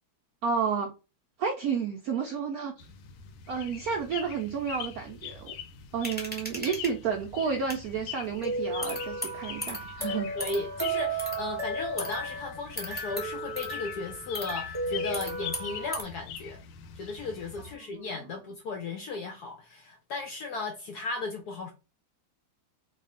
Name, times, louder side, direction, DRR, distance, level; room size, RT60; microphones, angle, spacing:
voice 1, 0.4-0.9 1.4-2.7 3.5-5.5 5.9-10.3 17.9-18.1, right 6 dB, 75° right, 0.8 m, -31 dB
sound 1, 2.8-17.7, left 7 dB, 90° left, 1.4 m, -44 dB
sound 2, 6.0-6.9 7.7-7.8 8.4-16.0, right 1 dB, 10° left, 0.7 m, -34 dB
voice 2, 10.0-16.6 17.0-21.7, left 3 dB, 75° left, 0.9 m, -36 dB
3.4 x 2.3 x 3.7 m
omnidirectional pair, 2.2 m